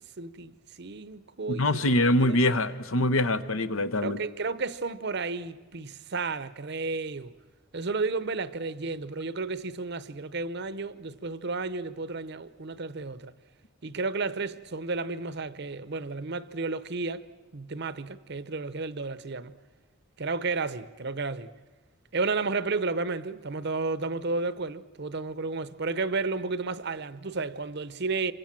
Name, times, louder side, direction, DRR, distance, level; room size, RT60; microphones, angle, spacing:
voice 1, 0.2-1.8 2.3-2.4 4.0-7.3 7.7-13.3 13.8-17.3 17.5-19.5 20.2-21.5 22.1-28.3, right 3 dB, 50° right, 0.8 m, -32 dB
voice 2, 1.6-4.2, left 1 dB, 70° left, 1.1 m, -24 dB
27.0 x 24.5 x 7.5 m
head